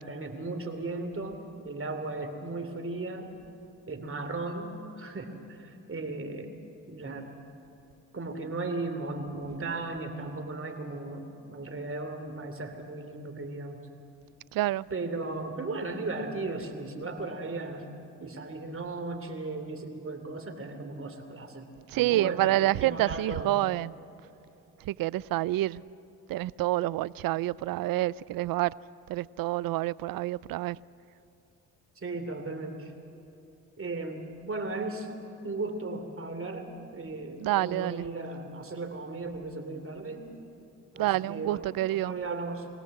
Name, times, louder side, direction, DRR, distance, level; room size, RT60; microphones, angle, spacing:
voice 1, 0.0-3.3 3.9-6.5 6.9-7.3 8.1-13.8 14.9-17.9 18.2-21.7 21.9-23.6 32.0-32.9 33.8-35.1 35.4-40.2 40.9-41.6 41.9-42.7, right 3 dB, 35° right, 3.0 m, -36 dB
voice 2, 14.5-14.9 21.9-23.9 24.8-25.8 26.3-28.7 29.1-30.8 37.4-38.0 41.0-42.1, right 16 dB, 70° right, 0.5 m, -28 dB
24.0 x 17.0 x 7.8 m
supercardioid pair, 60°, 36 cm